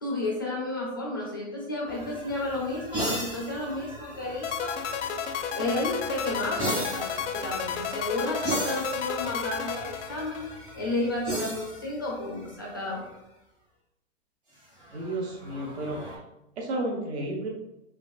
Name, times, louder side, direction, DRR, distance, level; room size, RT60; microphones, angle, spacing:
voice 1, 0.0-4.8 5.5-10.4 10.7-13.2, left 2 dB, 20° left, -2 dB, 0.4 m, -32 dB
sound 1, 1.9-13.0 14.6-16.2, right 1 dB, 10° right, 0.7 m, -37 dB
sound 2, 4.4-10.7, left 7 dB, 70° left, 0.5 m, -32 dB
voice 2, 14.9-16.0 16.6-17.5, right 1 dB, 60° right, 0 dB, 1.0 m, -32 dB
4.0 x 3.9 x 2.4 m, 0.88 s
hypercardioid pair, 165°, 37 cm